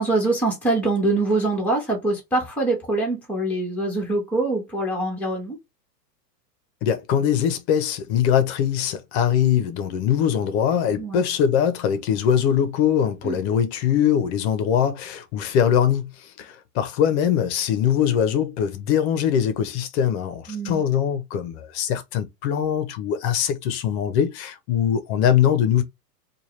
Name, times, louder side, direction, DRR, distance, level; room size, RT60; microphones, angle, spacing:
voice 1, 0.0-5.6 11.0-11.2 13.2-13.4 20.5-20.8, right 2 dB, 5° left, 1.6 m, -24 dB
voice 2, 6.8-25.8, left 9 dB, 40° left, 0.9 m, -22 dB
4.5 x 2.5 x 3.2 m
hypercardioid pair, 140°, 49 cm